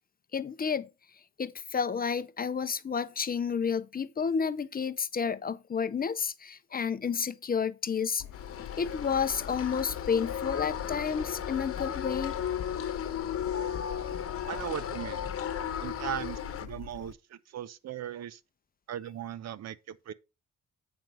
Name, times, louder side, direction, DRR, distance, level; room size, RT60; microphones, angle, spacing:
voice 1, 0.3-0.9 1.4-8.2 8.8-12.4 15.4-15.5, left 6 dB, 30° left, 0.5 m, -31 dB
Bird / Stream, 8.2-17.1, left 10 dB, 90° left, 0.8 m, -46 dB
sound 1, 8.3-16.7, left 9 dB, 50° left, 1.0 m, -35 dB
voice 2, 14.5-15.3 15.8-18.4 18.9-20.1, right 10 dB, 60° right, 0.7 m, -38 dB
8.0 x 5.2 x 4.7 m
cardioid pair, 90°, 30 cm